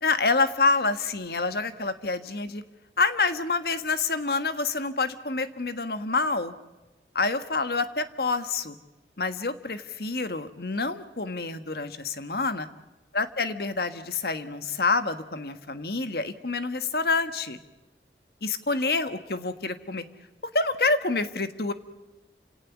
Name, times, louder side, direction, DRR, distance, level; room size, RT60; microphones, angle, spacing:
voice 1, 0.0-2.6 3.0-6.5 7.1-8.8 9.2-12.7 13.1-17.6 18.4-20.0 20.5-21.7, left 3 dB, 60° left, 10 dB, 1.5 m, -27 dB
29.0 x 17.5 x 7.3 m, 1.1 s
head